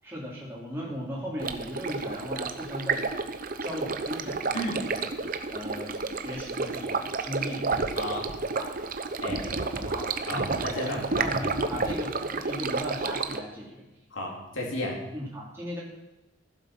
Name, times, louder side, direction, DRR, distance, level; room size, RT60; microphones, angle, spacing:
voice 1, 0.0-3.1 3.6-5.1 5.5-8.1 8.5-8.7 9.2-10.5 10.8-13.8 15.1-15.8, equal, 10° right, -5 dB, 2.9 m, -37 dB
Stream, 1.4-13.4, right 4 dB, 45° right, 0.8 m, -31 dB
voice 2, 4.5-4.9 8.0-8.4 9.2-9.4 10.3-11.2 14.1-15.0, equal, 70° left, -1 dB, 3.5 m, -33 dB
15.0 x 7.8 x 6.0 m, 1.0 s
head